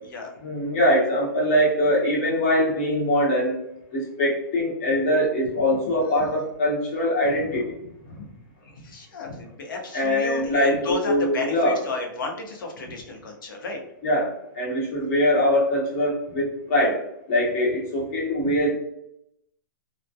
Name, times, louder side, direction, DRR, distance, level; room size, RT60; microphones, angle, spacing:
voice 1, 0.4-3.6 3.9-7.7 9.9-11.8 14.0-17.0 17.3-18.8, equal, 40° left, -4 dB, 0.9 m, -22 dB
voice 2, 8.6-13.8 18.4-18.5, left 3 dB, 80° left, 1 dB, 0.7 m, -33 dB
2.2 x 2.1 x 2.6 m, 0.81 s
hypercardioid pair, 150°, 11 cm